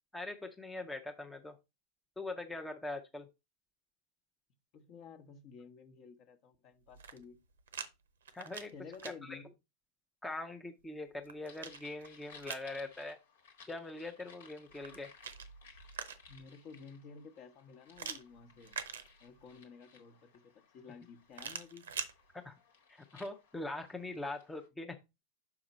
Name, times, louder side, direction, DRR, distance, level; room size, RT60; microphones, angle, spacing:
voice 1, 0.1-1.5 2.2-3.3 8.3-8.7 9.2-9.4 10.2-13.2 13.7-15.1 22.4-22.6 23.1-25.0, left 2 dB, 5° left, 0.7 m, -42 dB
voice 2, 4.7-7.4 8.7-9.5 16.3-18.8 19.2-21.9, left 5 dB, 40° left, 1.0 m, -53 dB
sound 1, 6.8-7.9 8.2-9.1 10.8-12.7 14.7-16.5 18.0-19.5 21.3-22.1, right 7 dB, 65° right, 0.7 m, -45 dB
sound 2, 11.5-24.7, left 5 dB, 60° left, 1.4 m, -61 dB
6.0 x 4.9 x 4.0 m
figure-of-eight pair, 90°, 0 cm